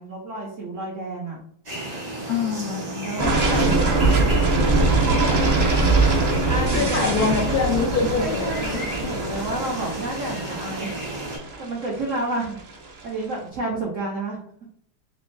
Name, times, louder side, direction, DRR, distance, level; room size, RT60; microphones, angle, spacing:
voice 1, 0.0-1.4 2.6-4.7 5.0-5.4 6.1-7.1 8.2-10.9 11.6-12.6 13.0-14.4, right 2 dB, 65° right, -3 dB, 0.7 m, -31 dB
sound 1, 1.7-11.4, right 1 dB, 40° right, 1.7 m, -33 dB
voice 2, 2.3-3.1 6.7-8.8, left 5 dB, 75° left, 0 dB, 0.8 m, -24 dB
sound 2, 3.2-13.0, right 3 dB, 80° right, 0.3 m, -22 dB
3.4 x 3.1 x 3.1 m, 0.66 s
omnidirectional pair, 2.2 m